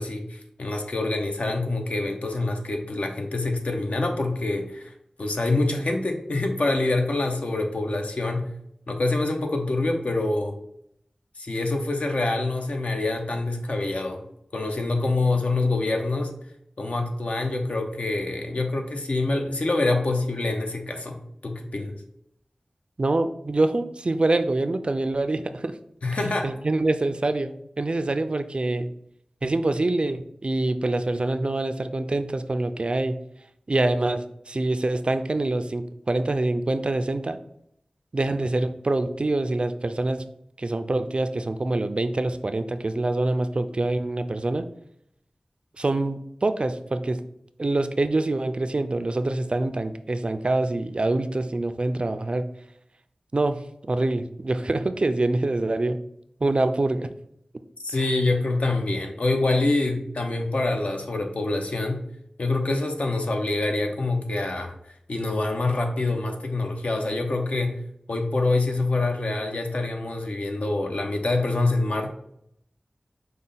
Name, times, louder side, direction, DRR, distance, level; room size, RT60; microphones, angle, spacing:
voice 1, 0.0-4.9 5.2-8.5 8.9-10.6 11.4-14.2 14.5-16.3 16.8-21.2 21.4-22.0 26.0-26.5 57.8-62.0 62.4-64.7 65.1-67.8 68.1-72.1, left 2 dB, 70° left, 3 dB, 0.7 m, -26 dB
voice 2, 23.0-25.7 26.4-28.9 29.4-33.2 33.7-37.4 38.1-40.2 40.6-44.7 45.8-47.2 47.6-52.5 53.3-53.6 53.9-56.0 56.4-57.1, right 2 dB, 50° right, 10 dB, 0.3 m, -25 dB
5.1 x 2.2 x 3.8 m, 0.74 s
wide cardioid pair, 45°, 2 cm